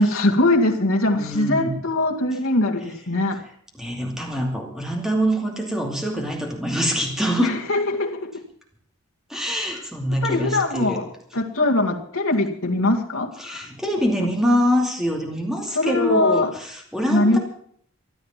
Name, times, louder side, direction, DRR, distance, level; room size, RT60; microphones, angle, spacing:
voice 1, 0.0-3.4 7.4-8.3 10.2-11.1 11.3-13.7 14.2-14.3 15.8-16.5 17.1-17.4, left 2 dB, 75° left, 1 dB, 2.1 m, -21 dB
voice 2, 1.1-1.8 3.8-7.6 9.3-11.0 13.4-17.4, equal, ahead, 1 dB, 2.5 m, -24 dB
14.5 x 11.0 x 7.5 m, 0.63 s
head